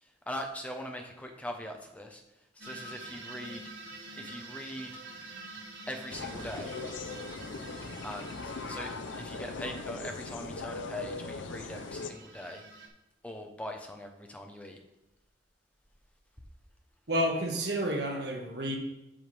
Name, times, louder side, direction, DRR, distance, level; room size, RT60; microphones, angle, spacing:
voice 1, 0.0-2.2 2.5-3.6 4.1-4.9 5.9-6.7 8.0-12.6 13.2-14.8, equal, 5° left, 3 dB, 0.8 m, -41 dB
sound 1, 2.6-10.4 11.5-12.9, right 2 dB, 80° right, 1.4 m, -47 dB
sound 2, 6.1-12.1, left 3 dB, 75° left, 0.6 m, -39 dB
voice 2, 17.1-18.8, equal, 55° right, 1 dB, 1.4 m, -30 dB
7.8 x 7.2 x 3.4 m, 0.94 s
head